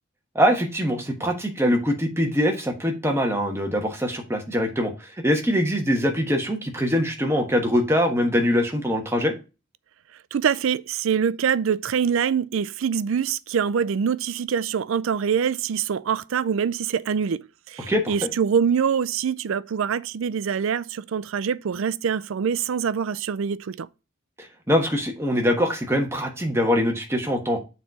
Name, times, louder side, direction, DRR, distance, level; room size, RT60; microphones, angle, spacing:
voice 1, 0.3-9.3 17.9-18.3 24.4-27.6, equal, 10° right, 1.2 m, -23 dB
voice 2, 10.3-23.9, right 7 dB, 80° right, 0.4 m, -24 dB
7.3 x 4.1 x 4.5 m
head